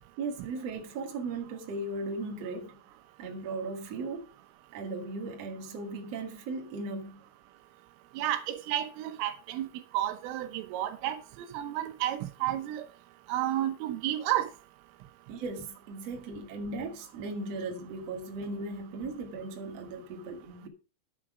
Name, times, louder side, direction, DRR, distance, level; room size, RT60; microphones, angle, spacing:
voice 1, 0.2-2.8 3.2-4.3 4.7-7.2 15.3-20.7, right 3 dB, 50° right, 1.9 m, -37 dB
voice 2, 8.2-9.7 9.9-12.9 13.3-14.5, right 13 dB, 85° right, 3.6 m, -31 dB
10.0 x 8.5 x 4.9 m
omnidirectional pair, 5.7 m